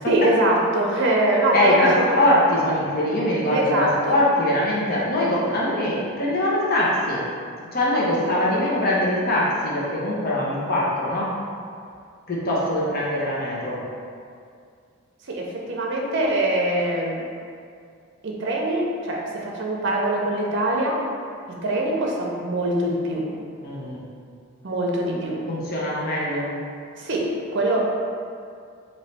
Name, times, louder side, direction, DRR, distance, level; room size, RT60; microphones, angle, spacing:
voice 1, 0.1-2.1 3.5-4.1 15.2-17.3 18.2-21.0 21.6-23.3 24.6-25.4 26.9-27.8, right 1 dB, 60° right, -1 dB, 0.7 m, -23 dB
voice 2, 1.5-7.2 7.7-11.3 12.3-13.8 23.6-24.0 25.5-26.5, left 1 dB, 45° left, -5 dB, 0.8 m, -22 dB
3.2 x 3.1 x 4.2 m, 2.3 s
head